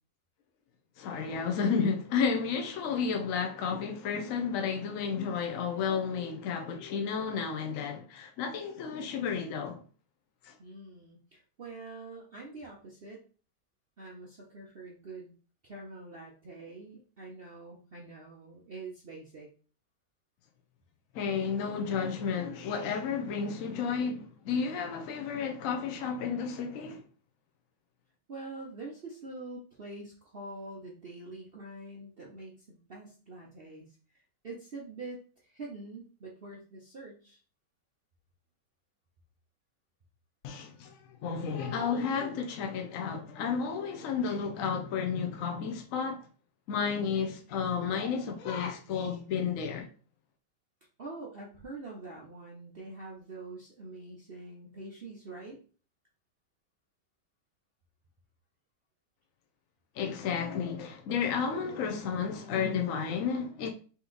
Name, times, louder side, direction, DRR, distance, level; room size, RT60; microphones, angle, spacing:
voice 1, 1.0-9.8 10.4-10.6 21.1-27.0 40.4-46.2 46.7-49.9 60.0-63.7, left 6 dB, 70° left, 0.8 m, -32 dB
voice 2, 10.6-13.2 14.0-15.3 15.6-19.5 28.3-33.9 34.4-37.4 51.0-55.6, right 2 dB, 60° right, 0.6 m, -45 dB
4.2 x 2.8 x 3.9 m
omnidirectional pair, 2.1 m